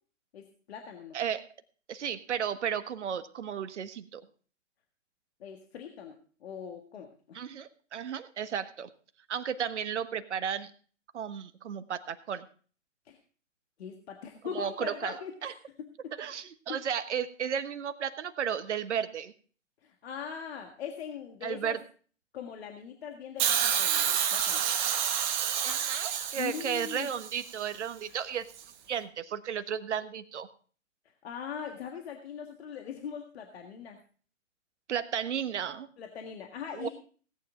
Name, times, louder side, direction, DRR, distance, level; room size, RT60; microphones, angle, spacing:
voice 1, 0.3-1.2 5.4-6.2 6.4-7.4 13.1-13.2 13.8-16.1 16.7-16.8 19.8-21.8 22.3-24.7 26.4-27.1 31.2-34.0 36.0-36.9, left 7 dB, 55° left, 4 dB, 1.7 m, -41 dB
voice 2, 1.1-1.5 1.9-4.2 7.3-8.9 9.3-10.7 11.1-12.5 14.5-15.5 16.2-19.3 21.4-21.8 25.6-28.5 28.9-30.5 34.9-35.9 36.7-36.9, right 8 dB, 60° right, 12 dB, 1.3 m, -34 dB
Hiss, 23.4-27.5 28.6-28.7, right 9 dB, 35° right, 1.5 m, -29 dB
17.0 x 9.4 x 3.7 m, 0.42 s
hypercardioid pair, 135°, 38 cm